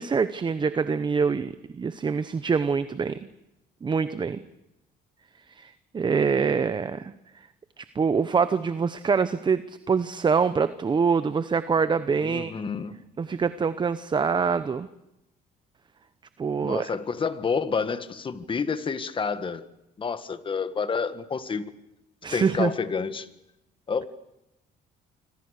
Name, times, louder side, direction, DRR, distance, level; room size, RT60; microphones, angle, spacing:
voice 1, 0.0-3.2 3.8-4.4 5.6-7.1 7.8-12.5 13.2-14.9 16.4-16.9 22.2-22.7, right 5 dB, 25° right, 13 dB, 0.9 m, -25 dB
voice 2, 12.2-13.0 16.6-19.6 20.0-21.7 22.3-23.3 23.9-24.1, left 5 dB, 30° left, 11 dB, 1.7 m, -29 dB
26.0 x 26.0 x 6.6 m, 0.89 s
cardioid pair, 110°, 17 cm